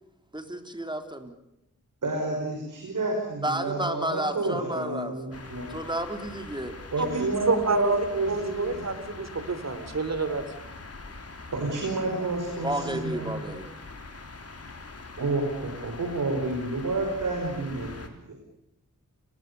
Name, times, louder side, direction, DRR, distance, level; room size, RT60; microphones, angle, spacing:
voice 1, 0.3-1.4 3.4-5.4 5.7-6.8 12.6-13.7, right 1 dB, 15° right, 7 dB, 3.5 m, -32 dB
voice 2, 2.0-5.7 6.9-8.8 11.5-13.4 15.2-18.4, right 2 dB, 75° right, 2 dB, 5.6 m, -30 dB
sound 1, 5.3-18.1, left 3 dB, 50° left, 3.9 m, -43 dB
voice 3, 7.0-10.4, right 3 dB, 55° right, 11 dB, 3.7 m, -28 dB
29.5 x 20.5 x 7.0 m, 0.84 s
cardioid pair, 65°, 31 cm